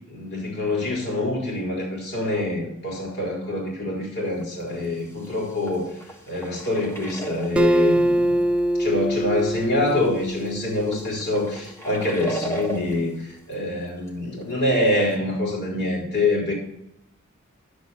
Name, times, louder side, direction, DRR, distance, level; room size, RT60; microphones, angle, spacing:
voice 1, 0.0-6.0 6.3-8.3 8.8-16.5, left 2 dB, 55° left, -3 dB, 4.0 m, -25 dB
sound 1, 4.4-4.5 4.8-7.8 8.6-8.7 9.9-13.5 13.8-14.1 14.4-14.5 15.0-15.1, right 2 dB, 10° left, 1.4 m, -36 dB
Acoustic guitar, 7.6-11.0, right 1 dB, 5° right, 0.5 m, -23 dB
11.0 x 7.2 x 4.2 m, 0.80 s
head